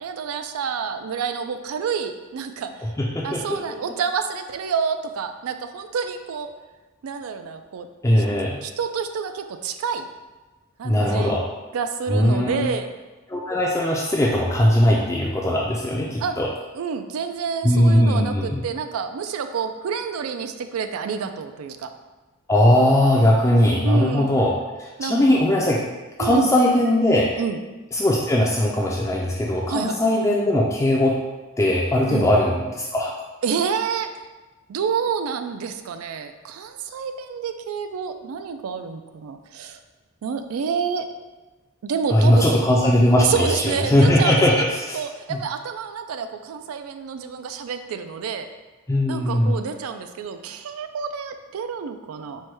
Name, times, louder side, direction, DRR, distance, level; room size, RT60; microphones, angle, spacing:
voice 1, 0.0-2.7 3.2-6.5 7.0-7.9 8.2-8.3 8.6-10.1 10.8-11.4 11.7-12.9 16.2-16.4 16.7-21.9 23.8-24.4 25.0-25.4 26.2-26.5 27.4-27.6 29.7-30.0 32.1-32.3 33.4-34.1 34.7-39.8 40.2-41.1 41.8-42.7 43.2-44.6 44.9-48.5 49.1-52.4, right 6 dB, 85° right, 8 dB, 0.4 m, -28 dB
voice 2, 2.8-3.6 8.0-8.6 10.8-11.4 12.1-12.6 13.3-16.5 17.6-18.6 22.5-24.5 24.8-25.8 26.2-27.3 27.9-31.1 31.6-33.1 42.1-45.0 45.3-45.4 48.9-49.5, left 1 dB, 15° left, -4 dB, 0.3 m, -19 dB
4.5 x 2.2 x 4.6 m, 1.2 s
head